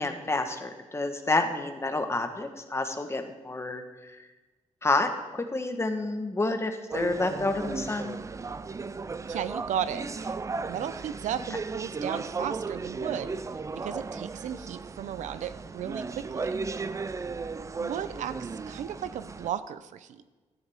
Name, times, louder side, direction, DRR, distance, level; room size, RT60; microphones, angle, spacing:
voice 1, 0.0-4.3 4.8-8.1, left 2 dB, 20° left, 6 dB, 1.2 m, -29 dB
sound 1, 6.9-19.5, right 4 dB, 25° right, 0.4 m, -35 dB
voice 2, 9.3-10.3 10.7-13.4 13.7-16.6 17.8-20.2, right 9 dB, 90° right, 13 dB, 0.5 m, -35 dB
13.0 x 9.8 x 3.5 m, 1.2 s
cardioid pair, 95°, 12 cm